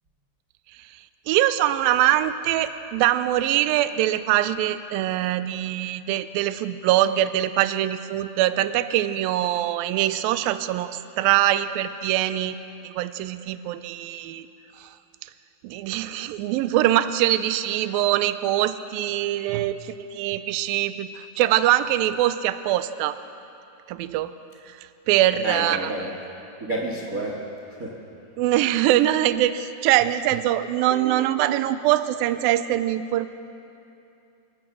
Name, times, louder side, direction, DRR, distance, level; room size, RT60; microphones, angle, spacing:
voice 1, 0.7-12.6 12.8-14.5 14.8-14.9 15.2-15.3 15.6-23.2 23.9-24.3 24.7-25.9 28.4-33.3, right 13 dB, 80° right, 12 dB, 2.4 m, -23 dB
voice 2, 25.4-26.1 26.6-27.9, right 1 dB, 30° right, -1 dB, 1.6 m, -30 dB
29.5 x 17.5 x 6.2 m, 2.7 s
omnidirectional pair, 4.3 m